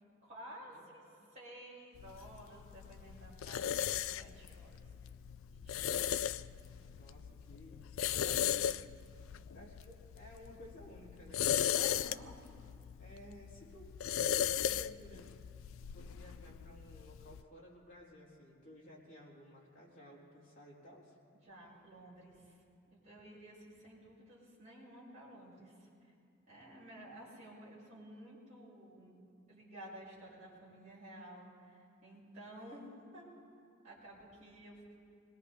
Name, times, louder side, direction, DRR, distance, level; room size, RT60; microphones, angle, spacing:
voice 1, 0.2-1.0 1.3-4.8 5.5-6.1 11.7-12.3 21.4-22.6 22.9-26.1 26.5-29.2 29.5-33.3 33.8-34.8, right 1 dB, 35° right, -8 dB, 5.5 m, -53 dB
sound 1, 2.0-17.4, left 10 dB, 70° left, 0.3 m, -37 dB
voice 2, 6.9-8.8 9.5-11.5 13.0-14.2 14.6-15.3 15.7-21.2, equal, 45° left, -5 dB, 4.0 m, -56 dB
26.0 x 20.0 x 2.8 m, 2.4 s
head